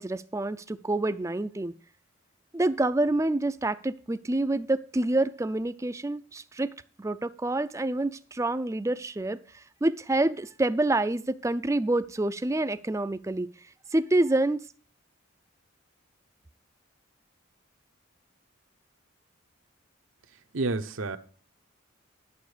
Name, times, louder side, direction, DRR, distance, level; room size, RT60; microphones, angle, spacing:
voice 1, 0.0-1.7 2.5-6.7 7.0-14.6, right 2 dB, 15° right, 0.4 m, -27 dB
voice 2, 20.5-21.2, right 3 dB, 80° right, 0.9 m, -29 dB
11.5 x 7.0 x 5.0 m
head